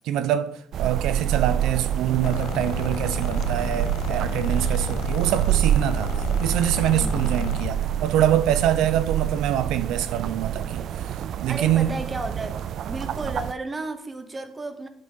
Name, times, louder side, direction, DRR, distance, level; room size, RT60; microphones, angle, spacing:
voice 1, 0.0-6.1 6.4-10.8 11.4-11.9, right 11 dB, 85° right, 0.7 m, -24 dB
sound 1, 0.7-13.5, right 10 dB, 50° right, 0.3 m, -27 dB
sound 2, 2.2-7.8, left 15 dB, 80° left, 0.6 m, -33 dB
voice 2, 7.0-7.5 11.5-12.6 12.9-14.9, right 2 dB, 15° right, 0.9 m, -33 dB
11.0 x 6.6 x 3.9 m
cardioid pair, 170°, 0 cm